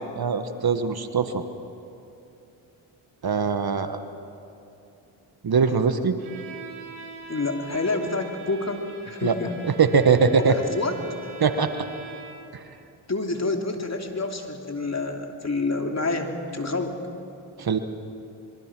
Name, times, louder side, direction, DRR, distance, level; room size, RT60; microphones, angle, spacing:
voice 1, 0.2-1.4 3.2-4.0 5.4-6.2 9.2-9.3 9.8-10.5 11.4-11.7 12.5-12.6 17.6-17.8, right 5 dB, 50° right, 9 dB, 1.5 m, -21 dB
Bowed string instrument, 6.2-12.5, right 5 dB, 80° right, 5.4 m, -42 dB
voice 2, 7.3-9.5 10.4-10.9 11.2-11.3 13.1-17.0, left 3 dB, 35° left, 3 dB, 3.0 m, -28 dB
26.0 x 23.0 x 6.1 m, 2.8 s
supercardioid pair, 50°, 48 cm